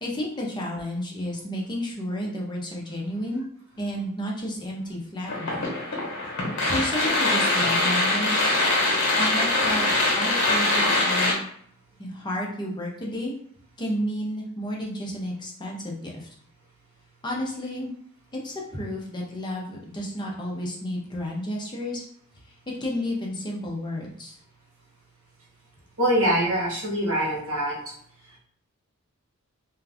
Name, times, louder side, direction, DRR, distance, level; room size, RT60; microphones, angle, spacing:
voice 1, 0.0-3.4 3.8-5.7 6.7-8.5 9.2-9.9 10.1-11.4 12.0-13.3 13.8-16.3 17.2-17.9 18.4-22.0 22.8-24.3, equal, 20° left, -2 dB, 0.5 m, -31 dB
sound 1, 5.3-11.3, left 2 dB, 55° left, 1.1 m, -23 dB
voice 2, 26.0-27.8, right 1 dB, 65° right, -4 dB, 1.2 m, -23 dB
2.4 x 2.3 x 3.4 m, 0.65 s
head